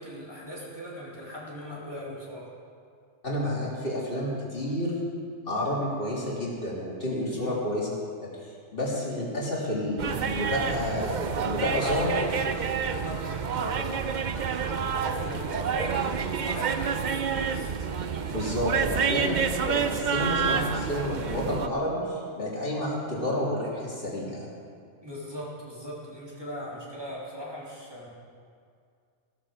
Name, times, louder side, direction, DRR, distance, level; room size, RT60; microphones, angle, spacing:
voice 1, 0.0-2.5 7.3-7.5 11.5-12.4 12.8-14.3 14.9-16.1 16.4-17.7 25.0-28.1, equal, 20° right, -6 dB, 3.2 m, -39 dB
voice 2, 3.2-5.0 5.5-7.9 8.2-12.1 18.3-24.5, left 1 dB, 50° left, -5 dB, 3.4 m, -30 dB
sound 1, 10.0-21.7, right 6 dB, 50° right, 0.7 m, -28 dB
16.0 x 13.0 x 5.0 m, 2.2 s
omnidirectional pair, 1.2 m